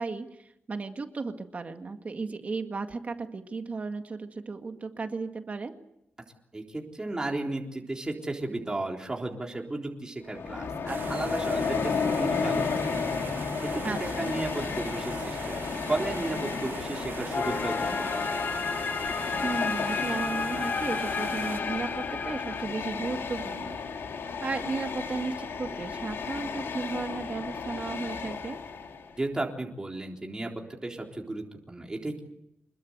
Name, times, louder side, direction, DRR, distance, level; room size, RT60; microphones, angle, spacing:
voice 1, 0.0-5.7 13.8-14.3 19.4-23.8 24.4-28.6, right 4 dB, 35° right, 6 dB, 2.0 m, -35 dB
voice 2, 6.5-13.0 13.7-15.6 15.9-18.2 29.2-30.5 30.8-32.2, right 2 dB, 20° right, 1 dB, 3.8 m, -34 dB
Train, 10.3-29.2, left 5 dB, 80° left, 3.6 m, -33 dB
sound 1, 10.9-21.6, right 6 dB, 60° right, 1.0 m, -42 dB
sound 2, 17.3-22.7, left 5 dB, 45° left, 1.1 m, -32 dB
27.0 x 21.5 x 8.1 m, 0.80 s
wide cardioid pair, 150°, 4 cm